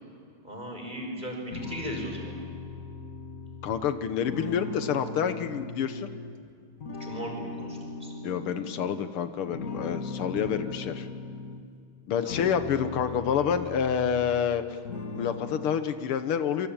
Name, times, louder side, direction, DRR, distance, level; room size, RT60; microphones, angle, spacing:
voice 1, 0.4-2.3 7.0-8.1 10.4-10.7 12.2-12.5, equal, 20° right, 1 dB, 6.1 m, -37 dB
sound 1, 1.5-6.4 6.8-9.1 9.5-11.7 12.1-14.6 14.9-15.8, left 4 dB, 40° left, 1.9 m, -39 dB
voice 2, 3.6-6.1 8.2-11.1 12.1-14.8 15.1-16.7, left 8 dB, 85° left, 10 dB, 2.0 m, -28 dB
28.0 x 24.0 x 8.9 m, 2.3 s
omnidirectional pair, 2.3 m